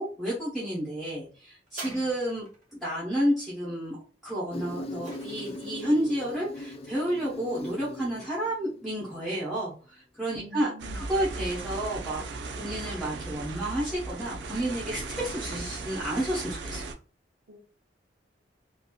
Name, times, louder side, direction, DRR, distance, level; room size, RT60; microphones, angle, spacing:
voice 1, 0.0-2.5 2.7-16.8, right 1 dB, ahead, -8 dB, 0.9 m, -31 dB
sound 1, 1.7-2.7 4.4-5.8 6.6-6.7, right 3 dB, 40° right, 1.3 m, -45 dB
voice 2, 1.8-2.1 10.4-11.0 17.5-17.6, equal, 80° right, 1 dB, 1.0 m, -46 dB
Insect, 4.5-9.5, left 1 dB, 30° left, 0.4 m, -40 dB
sound 2, 10.8-16.9, right 3 dB, 65° right, 0.4 m, -37 dB
3.0 x 2.7 x 2.3 m, 0.38 s
head